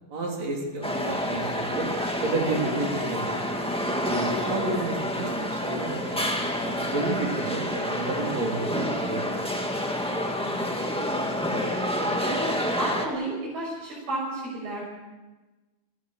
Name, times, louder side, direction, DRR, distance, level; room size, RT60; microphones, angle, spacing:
voice 1, 0.1-1.9 2.2-3.4 4.1-6.2 6.6-9.4, right 2 dB, 45° right, 0 dB, 4.3 m, -31 dB
sound 1, 0.8-13.1, equal, 5° left, 0.5 m, -28 dB
voice 2, 3.8-4.4 10.3-12.5 12.8-14.9, right 1 dB, 80° right, -5 dB, 8.0 m, -34 dB
29.0 x 17.0 x 6.4 m, 1.2 s
omnidirectional pair, 4.3 m